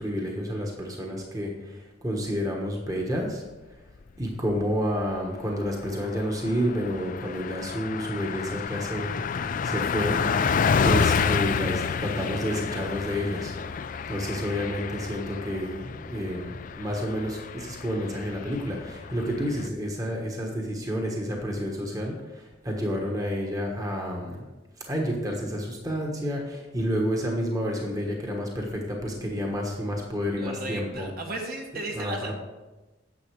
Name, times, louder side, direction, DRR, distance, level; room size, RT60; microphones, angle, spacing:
voice 1, 0.0-3.4 4.2-9.2 9.6-10.2 10.8-13.6 14.1-24.5 24.9-31.1 31.7-32.3, equal, 20° right, 0 dB, 1.3 m, -30 dB
Car passing by, 4.0-4.6 5.0-5.1 5.4-19.7, left 6 dB, 45° left, 0.4 m, -30 dB
voice 2, 30.4-32.3, right 1 dB, 50° right, 1 dB, 1.6 m, -34 dB
9.8 x 7.0 x 4.8 m, 1.1 s
head